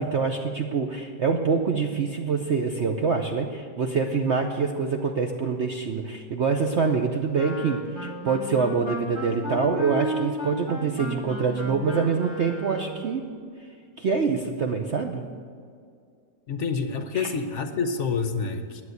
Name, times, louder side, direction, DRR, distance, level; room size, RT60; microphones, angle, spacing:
voice 1, 0.0-13.2 14.0-15.3 17.1-17.3, right 5 dB, 60° right, 4 dB, 0.7 m, -25 dB
Wind instrument woodwind instrument, 7.3-13.1, right 2 dB, 5° right, 2.3 m, -34 dB
voice 2, 16.5-18.8, left 5 dB, 55° left, 8 dB, 0.9 m, -28 dB
10.5 x 9.4 x 7.9 m, 2.2 s
omnidirectional pair, 2.0 m